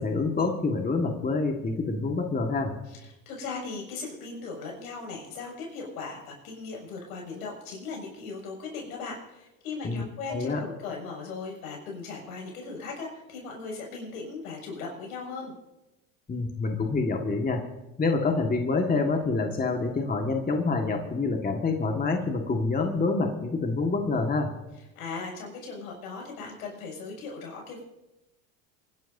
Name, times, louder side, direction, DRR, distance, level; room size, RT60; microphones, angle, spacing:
voice 1, 0.0-2.7 9.8-10.0 10.3-10.6 16.3-17.6 18.0-24.5, left 3 dB, 20° left, 3 dB, 1.8 m, -27 dB
voice 2, 2.9-15.5 24.9-27.8, left 4 dB, 80° left, -1 dB, 6.5 m, -38 dB
28.0 x 11.5 x 2.7 m, 0.97 s
hypercardioid pair, 80°, 43 cm